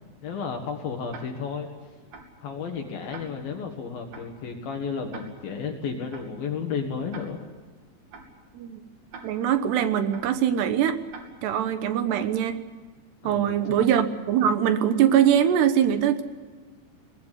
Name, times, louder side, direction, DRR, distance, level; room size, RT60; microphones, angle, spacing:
voice 1, 0.2-1.7 2.4-7.4 13.2-13.6, left 6 dB, 60° left, 3 dB, 3.2 m, -32 dB
Tick-tock, 1.1-1.2 2.1-2.2 3.1-3.2 4.1-4.2 5.1-5.2 6.1-6.2 7.1-7.2 8.1-8.2 9.1-9.2 10.1-10.2 11.1-11.2 12.1-12.2, right 5 dB, 55° right, 4.3 m, -42 dB
voice 2, 9.2-11.0 11.4-12.6 13.2-16.2, right 9 dB, 70° right, 10 dB, 3.1 m, -22 dB
23.0 x 20.0 x 8.2 m, 1.4 s
omnidirectional pair, 5.4 m